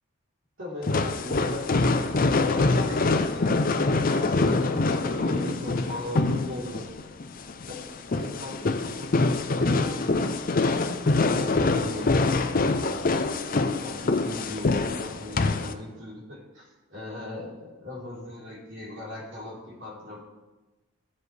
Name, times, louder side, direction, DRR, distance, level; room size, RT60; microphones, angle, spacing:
voice 1, 0.6-2.0 2.3-7.1 7.7-10.2 11.3-13.1 13.6-20.2, left 1 dB, 60° right, -5 dB, 3.6 m, -39 dB
sound 1, 0.8-15.7, left 3 dB, 40° left, 0.5 m, -25 dB
14.5 x 7.3 x 3.3 m, 1.1 s
head